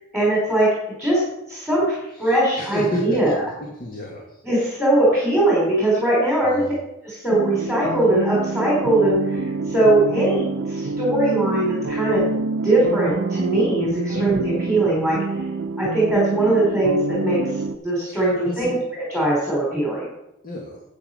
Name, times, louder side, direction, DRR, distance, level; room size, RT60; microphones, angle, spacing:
voice 1, 0.1-0.7 1.0-3.4 4.4-6.6 7.0-12.3 12.6-15.4 15.8-20.1, right 1 dB, ahead, -6 dB, 3.4 m, -21 dB
voice 2, 2.1-3.2 3.6-4.4 6.4-6.7 14.1-14.3 18.1-18.8 20.4-20.8, left 1 dB, 45° left, -1 dB, 1.9 m, -33 dB
sound 1, 7.3-17.8, right 3 dB, 65° right, 0.5 m, -26 dB
9.8 x 8.4 x 5.5 m, 0.89 s
head